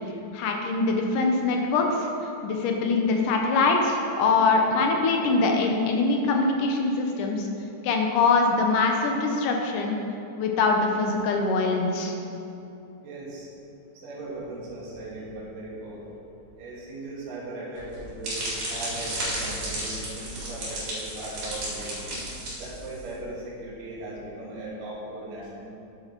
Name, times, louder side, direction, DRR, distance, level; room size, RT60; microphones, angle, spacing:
voice 1, 0.3-2.1 2.4-7.5 7.8-10.0 10.4-12.1, left 3 dB, 75° left, 2 dB, 2.4 m, -23 dB
voice 2, 13.0-13.5 13.9-16.2 16.6-18.4 18.7-21.9 22.6-25.7, right 2 dB, 75° right, -6 dB, 3.5 m, -38 dB
sound 1, 17.8-23.1, right 1 dB, 60° right, 3.5 m, -33 dB
9.7 x 8.4 x 4.5 m, 2.8 s
omnidirectional pair, 3.8 m